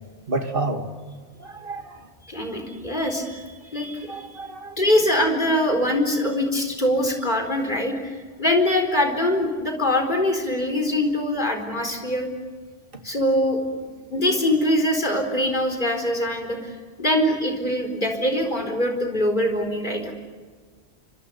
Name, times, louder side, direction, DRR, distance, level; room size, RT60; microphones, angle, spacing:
voice 1, 0.3-0.9 1.4-2.1 4.1-4.8 12.9-13.0, right 2 dB, 55° right, 5 dB, 2.4 m, -29 dB
voice 2, 2.3-4.4 4.8-12.3 13.0-13.6 14.1-16.7 17.0-20.1, left 1 dB, 50° left, 3 dB, 4.6 m, -23 dB
29.5 x 25.5 x 7.0 m, 1.5 s
omnidirectional pair, 1.1 m